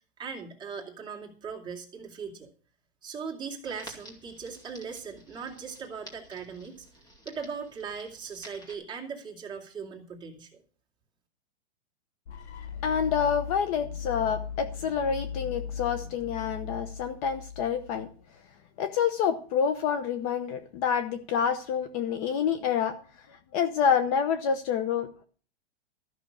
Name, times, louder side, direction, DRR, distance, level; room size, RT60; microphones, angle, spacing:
voice 1, 0.2-2.5 3.0-6.9 7.2-10.5, right 6 dB, 15° right, -1 dB, 2.5 m, -39 dB
Crackle, 3.6-8.7, equal, 10° left, 2.3 m, -51 dB
sound 1, 12.3-18.2, left 7 dB, 90° left, 2.3 m, -38 dB
voice 2, 12.8-18.1 18.8-23.0 23.5-25.2, left 7 dB, 35° left, 9 dB, 0.9 m, -27 dB
13.5 x 6.2 x 8.5 m, 0.41 s
supercardioid pair, 160°, 32 cm